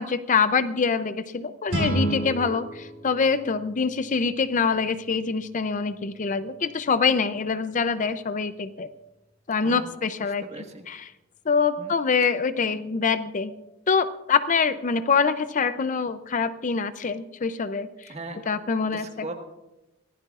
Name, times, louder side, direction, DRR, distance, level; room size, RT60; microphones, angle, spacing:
voice 1, 0.0-8.9 9.5-11.1 11.5-13.5 13.9-18.1 18.5-19.3, left 5 dB, 40° left, 12 dB, 0.5 m, -25 dB
sound 1, 1.7-4.7, right 1 dB, 85° right, 6.0 m, -31 dB
voice 2, 10.2-10.8 11.8-11.9 18.1-18.4 18.8-19.3, right 2 dB, 35° right, 4 dB, 1.6 m, -39 dB
24.5 x 15.5 x 2.4 m, 0.98 s
head